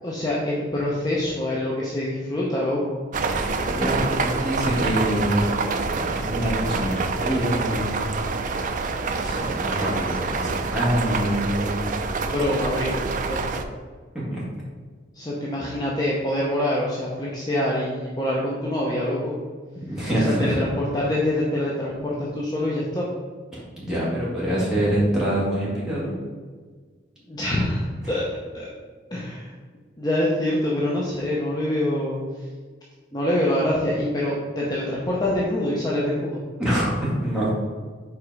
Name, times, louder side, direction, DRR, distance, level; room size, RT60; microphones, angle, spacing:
voice 1, 0.0-3.0 12.2-13.6 15.1-19.4 20.2-23.1 27.3-28.7 29.1-29.5 30.0-32.2 33.1-36.4, left 1 dB, 20° left, -5 dB, 0.7 m, -25 dB
sound 1, 3.1-13.6, right 4 dB, 40° right, 0.4 m, -26 dB
voice 2, 3.2-5.5 5.7-8.0 9.2-11.9 14.3-14.4 19.7-20.6 23.8-26.2 36.6-37.5, equal, 5° right, -8 dB, 1.8 m, -25 dB
4.9 x 4.3 x 4.7 m, 1.5 s
head